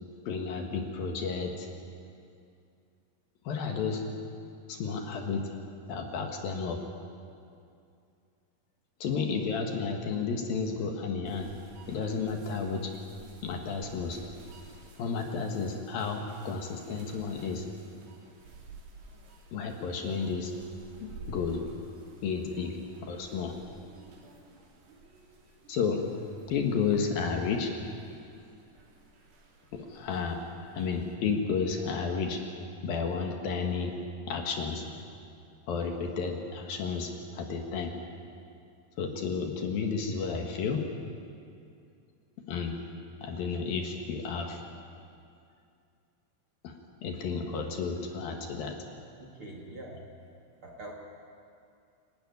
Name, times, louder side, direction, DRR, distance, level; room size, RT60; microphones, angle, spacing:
voice 1, 0.3-1.7 3.4-4.0 4.7-5.5 5.9-6.8 9.0-11.5 11.9-12.9 13.4-14.2 15.0-17.6 19.5-20.5 21.0-21.6 22.2-22.7 23.0-23.5 25.7-26.0 26.5-27.7 29.7-30.4 30.7-32.4 32.8-34.0 34.3-34.8 35.7-37.9 39.0-40.8 42.5-42.8 43.2-44.6 46.6-46.8 47.0-48.8, left 5 dB, 65° left, 3 dB, 3.1 m, -32 dB
sound 1, 11.3-31.1, right 3 dB, 70° right, 4.8 m, -53 dB
voice 2, 49.2-50.0 50.6-50.9, right 1 dB, 40° right, 0 dB, 2.4 m, -44 dB
28.0 x 12.5 x 9.5 m, 2.4 s
omnidirectional pair, 4.9 m